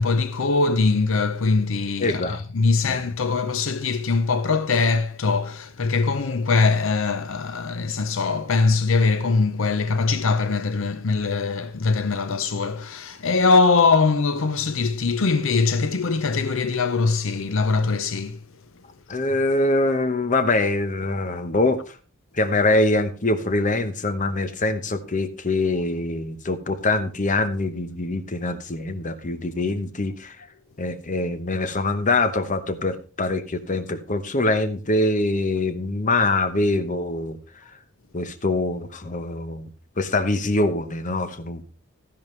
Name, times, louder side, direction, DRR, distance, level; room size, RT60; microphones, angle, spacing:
voice 1, 0.0-18.4, left 4 dB, 65° left, 0.6 m, -22 dB
voice 2, 2.0-2.4 2.9-3.0 19.1-22.0 22.3-30.5 30.8-37.4 38.1-39.7 40.0-41.6, left 2 dB, 40° left, 0.9 m, -24 dB
12.5 x 10.5 x 3.2 m
head